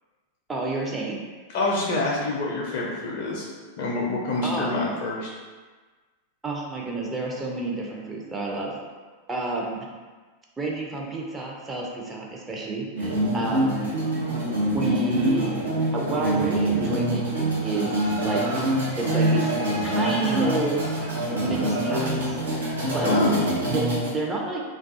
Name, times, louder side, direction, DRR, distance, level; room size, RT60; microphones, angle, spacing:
voice 1, 0.5-1.2 4.4-4.7 6.4-8.8 9.3-9.9 10.6-13.9 14.7-15.6 15.9-18.7 19.0-19.5 19.8-20.8 21.4-22.6 22.9-23.1 23.6-24.6, right 3 dB, 15° right, -2 dB, 0.4 m, -29 dB
voice 2, 1.5-3.5 3.8-5.3 23.0-23.3, left 2 dB, 50° left, -3 dB, 0.4 m, -26 dB
sound 1, 13.0-24.1, right 1 dB, 70° right, 0.6 m, -25 dB
2.3 x 2.2 x 2.6 m, 1.4 s
figure-of-eight pair, 90°, 0 cm